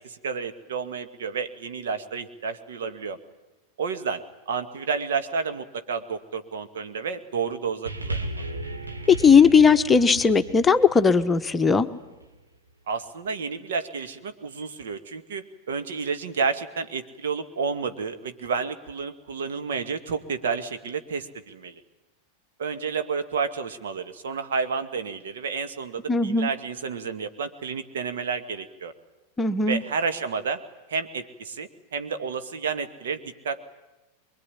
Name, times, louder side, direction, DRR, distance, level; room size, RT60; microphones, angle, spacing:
voice 1, 0.0-3.2 3.8-8.5 12.9-21.8 22.6-28.9 29.7-30.6 30.9-33.6, right 5 dB, 60° right, 8 dB, 1.8 m, -30 dB
sound 1, 7.9-12.4 13.2-13.3, right 2 dB, 80° right, 2.1 m, -36 dB
voice 2, 9.1-11.9 26.1-26.5 29.4-29.8, left 5 dB, 15° left, 9 dB, 1.0 m, -18 dB
24.0 x 22.5 x 10.0 m, 1.1 s
figure-of-eight pair, 90°, 0 cm